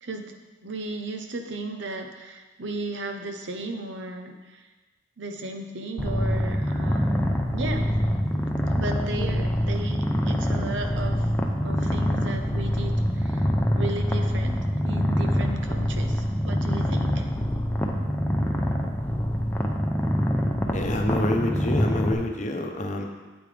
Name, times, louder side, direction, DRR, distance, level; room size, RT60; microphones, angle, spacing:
voice 1, 0.0-4.6 5.2-7.9 8.8-11.2 11.6-14.6 14.8-17.3, right 2 dB, 80° right, 4 dB, 0.9 m, -35 dB
Purr, 6.0-22.1, equal, 10° left, 0.6 m, -25 dB
voice 2, 20.7-23.1, left 1 dB, 40° left, 3 dB, 0.9 m, -27 dB
8.8 x 8.2 x 3.4 m, 1.2 s
head